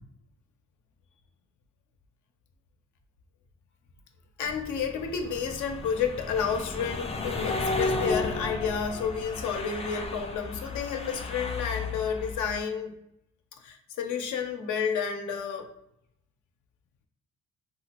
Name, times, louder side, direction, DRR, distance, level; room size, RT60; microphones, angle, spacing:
voice 1, 4.4-13.0 13.6-15.7, left 6 dB, 75° left, 5 dB, 0.6 m, -31 dB
sound 1, 4.4-12.6, left 3 dB, 20° left, 0.4 m, -34 dB
2.9 x 2.3 x 2.9 m, 0.81 s
cardioid pair, 90°, 30 cm